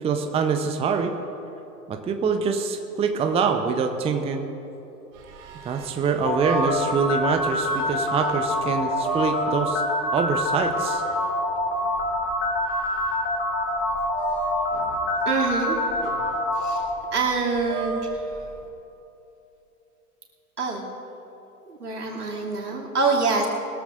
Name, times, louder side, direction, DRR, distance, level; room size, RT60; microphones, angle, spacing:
voice 1, 0.0-1.1 1.9-4.5 5.6-9.8 10.1-11.0, right 5 dB, 15° right, 5 dB, 0.7 m, -25 dB
sound 1, 5.1-18.7, right 2 dB, 55° right, 2.3 m, -37 dB
sound 2, 6.2-16.9, left 2 dB, 25° left, 1.9 m, -26 dB
voice 2, 15.2-15.8 16.6-16.8 17.1-18.5 20.6-20.9 21.7-23.5, right 4 dB, 80° right, -2 dB, 2.7 m, -25 dB
21.0 x 14.5 x 2.5 m, 3.0 s
figure-of-eight pair, 95°, 46 cm